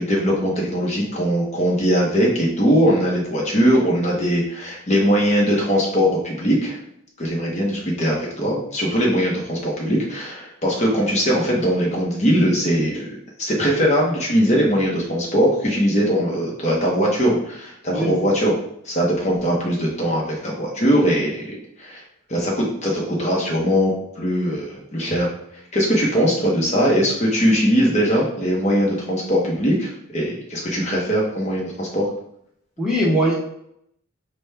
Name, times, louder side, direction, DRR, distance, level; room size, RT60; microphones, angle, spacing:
voice 1, 0.0-6.8 7.2-13.1 13.4-18.5 18.8-22.0 22.3-25.3 25.7-32.1, equal, 30° left, -3 dB, 0.8 m, -20 dB
voice 2, 17.9-18.2 32.8-33.3, equal, 5° right, -6 dB, 0.9 m, -20 dB
6.0 x 2.2 x 3.3 m, 0.74 s
head